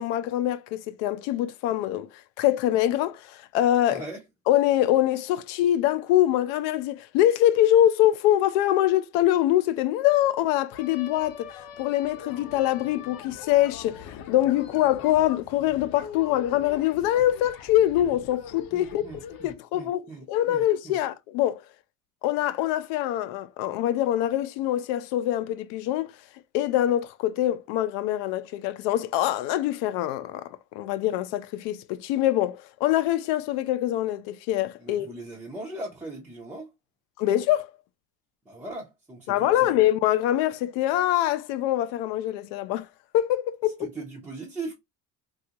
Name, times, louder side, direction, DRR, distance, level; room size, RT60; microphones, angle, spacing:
voice 1, 0.0-2.1 2.4-4.0 4.5-19.0 19.3-21.6 22.2-26.1 26.5-35.1 37.2-37.7 39.3-42.9 43.1-43.9, left 13 dB, 85° left, 0.6 m, -24 dB
voice 2, 3.9-4.2 18.7-21.0 34.8-36.7 38.5-39.8 43.8-44.7, right 2 dB, 5° right, 0.4 m, -39 dB
sound 1, 10.7-19.5, left 7 dB, 50° left, 0.7 m, -42 dB
3.4 x 2.4 x 2.7 m
cardioid pair, 160°, 43 cm